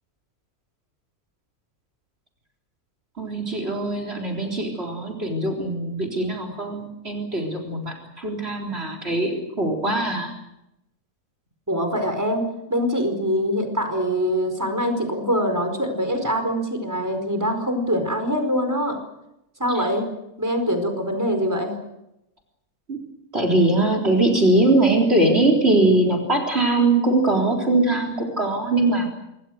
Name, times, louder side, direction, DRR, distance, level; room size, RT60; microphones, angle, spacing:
voice 1, 3.2-10.3 19.7-19.8 22.9-23.0 23.3-29.1, right 2 dB, 45° right, 3 dB, 4.2 m, -21 dB
voice 2, 11.7-19.0 19.6-20.1 20.4-21.7, equal, 10° right, 6 dB, 4.7 m, -24 dB
27.0 x 23.0 x 6.5 m, 0.86 s
omnidirectional pair, 1.6 m